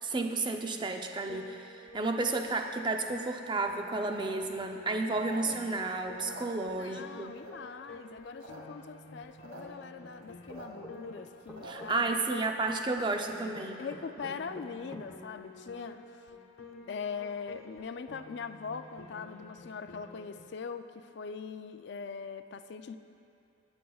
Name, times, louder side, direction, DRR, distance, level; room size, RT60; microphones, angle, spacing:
voice 1, 0.0-7.4 11.6-13.8, right 3 dB, 25° right, 5 dB, 0.5 m, -32 dB
Piano, 1.3-20.5, left 3 dB, 90° left, 1.0 m, -51 dB
sound 1, 4.0-5.8 6.1-7.0 7.4-7.8 8.2-8.6 8.8-8.9 9.1-9.6 10.0-12.0, right 1 dB, 85° right, 1.8 m, -49 dB
voice 2, 5.4-5.8 6.7-12.5 13.8-16.0 16.9-23.0, left 5 dB, 55° left, 9 dB, 0.4 m, -42 dB
sound 2, 10.5-11.9 13.5-15.1, equal, ahead, 1.0 m, -47 dB
17.5 x 9.7 x 2.3 m, 2.6 s
head